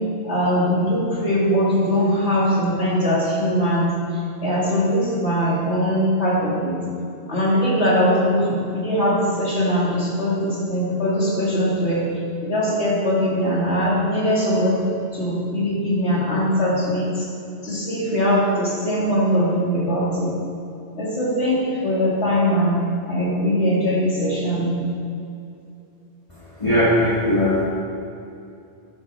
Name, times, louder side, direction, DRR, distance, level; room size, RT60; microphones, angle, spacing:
voice 1, 0.2-3.9 4.4-6.8 7.3-12.1 12.4-14.8 15.1-17.3 17.6-20.3 20.9-24.7, equal, 65° left, -6 dB, 3.5 m, -21 dB
voice 2, 26.6-27.6, left 1 dB, 25° left, -9 dB, 2.2 m, -18 dB
12.5 x 11.0 x 5.1 m, 2.5 s
omnidirectional pair, 1.2 m